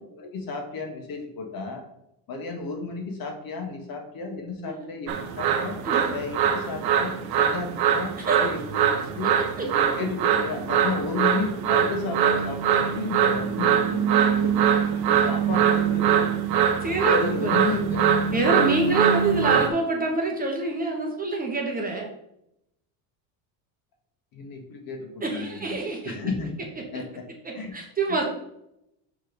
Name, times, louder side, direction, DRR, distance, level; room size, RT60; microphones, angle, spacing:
voice 1, 0.1-1.8 2.3-5.8 6.1-9.3 9.6-16.5 17.0-18.1 24.3-25.8 26.0-26.5 26.9-27.2 27.5-27.7 28.1-28.2, left 4 dB, 45° left, 3 dB, 1.6 m, -33 dB
sound 1, 5.1-19.7, right 8 dB, 50° right, 1.0 m, -23 dB
voice 2, 16.8-17.6 18.3-22.1 25.2-26.1 26.9-27.0 27.4-28.2, right 3 dB, 20° right, 0 dB, 1.1 m, -26 dB
6.1 x 4.4 x 5.1 m, 0.81 s
cardioid pair, 145°, 48 cm